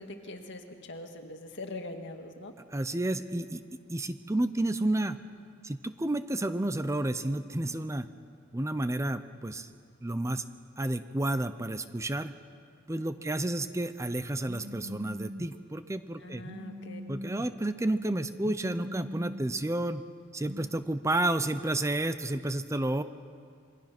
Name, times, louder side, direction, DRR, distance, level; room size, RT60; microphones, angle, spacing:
voice 1, 0.0-2.5 13.2-13.3 16.2-17.0, left 2 dB, 60° left, 4 dB, 2.1 m, -42 dB
voice 2, 2.7-3.6 3.9-5.2 5.6-8.1 8.5-9.7 10.0-10.4 10.8-12.3 12.9-16.4 17.1-20.0 20.3-23.0, right 1 dB, 15° right, 11 dB, 0.6 m, -31 dB
Telephone, 14.4-15.5 16.4-17.5 18.4-19.5 20.4-20.7, equal, 45° right, 1.1 m, -42 dB
27.0 x 22.5 x 6.0 m, 2.2 s
head